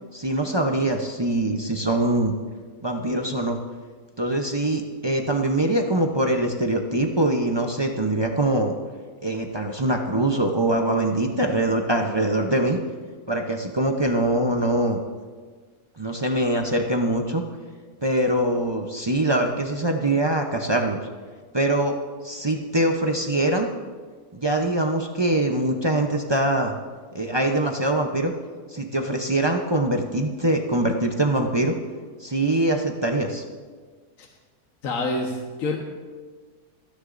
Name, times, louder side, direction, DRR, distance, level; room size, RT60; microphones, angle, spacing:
voice 1, 0.1-2.3 2.8-3.6 4.2-8.7 9.2-12.8 13.3-15.0 16.0-17.4 18.0-21.0 21.5-22.0 22.2-23.7 24.3-26.7 27.1-28.3 28.7-31.8 32.2-33.4, right 1 dB, 30° right, 2 dB, 0.5 m, -23 dB
voice 2, 34.8-35.8, left 2 dB, 60° left, 0 dB, 1.6 m, -26 dB
29.0 x 9.8 x 2.6 m, 1.5 s
omnidirectional pair, 1.6 m